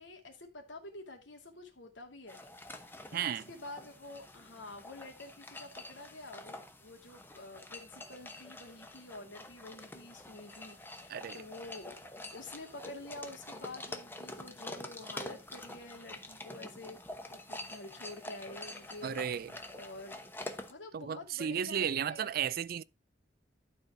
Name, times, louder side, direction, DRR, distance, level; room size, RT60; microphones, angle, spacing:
voice 1, 0.0-2.8 3.1-12.0 12.3-17.0 17.3-19.2 19.7-20.2 20.7-22.3, left 2 dB, 90° left, 2.3 m, -48 dB
sound 1, 2.3-20.7, left 2 dB, 10° left, 0.9 m, -47 dB
voice 2, 3.1-3.4 11.1-11.4 19.0-19.5 20.9-22.8, right 8 dB, 55° right, 0.4 m, -34 dB
12.0 x 4.3 x 4.8 m
head